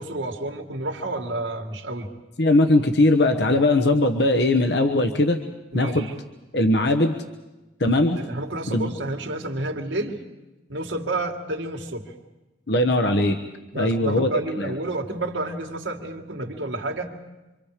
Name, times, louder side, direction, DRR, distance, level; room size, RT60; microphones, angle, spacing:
voice 1, 0.0-2.1 5.7-6.1 8.1-10.2 10.7-12.1 13.7-17.1, right 2 dB, 85° right, 2 dB, 2.3 m, -30 dB
voice 2, 2.4-5.4 5.7-6.1 6.5-7.2 7.8-8.2 8.7-8.9 12.7-13.4 13.7-14.3 14.6-14.7, left 2 dB, 60° left, 6 dB, 1.2 m, -20 dB
27.0 x 25.0 x 5.1 m, 1.0 s
head